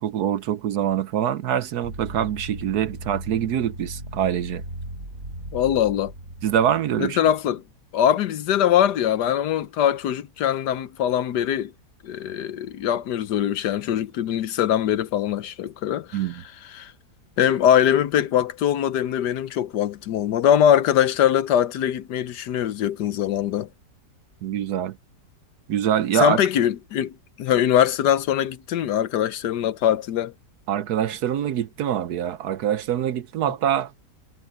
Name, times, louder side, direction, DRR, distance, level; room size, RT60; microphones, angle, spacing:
voice 1, 0.0-4.6 6.4-7.2 16.1-16.4 24.4-25.0 25.7-26.4 30.7-33.9, right 10 dB, 70° right, 1.2 m, -24 dB
sound 1, 1.8-7.6, right 1 dB, 50° right, 7.0 m, -38 dB
voice 2, 5.5-6.1 7.0-7.6 7.9-11.7 12.0-16.2 16.7-16.9 17.4-23.7 26.1-30.3, left 10 dB, 75° left, 1.4 m, -22 dB
omnidirectional pair, 1.9 m